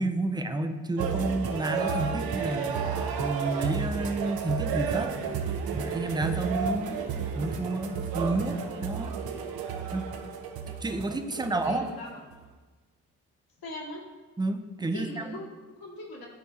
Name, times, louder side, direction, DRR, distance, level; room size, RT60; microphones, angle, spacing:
voice 1, 0.0-5.1 5.7-7.0 7.4-9.1 9.9-10.1 10.8-11.9 14.4-15.4, right 2 dB, 10° right, 7 dB, 0.6 m, -30 dB
sound 1, 1.0-12.4, right 6 dB, 60° right, 0.8 m, -32 dB
voice 2, 11.3-12.1 13.6-14.0 14.9-16.3, left 1 dB, 55° left, -3 dB, 1.9 m, -40 dB
11.5 x 4.5 x 2.8 m, 1.3 s
hypercardioid pair, 45°, 42 cm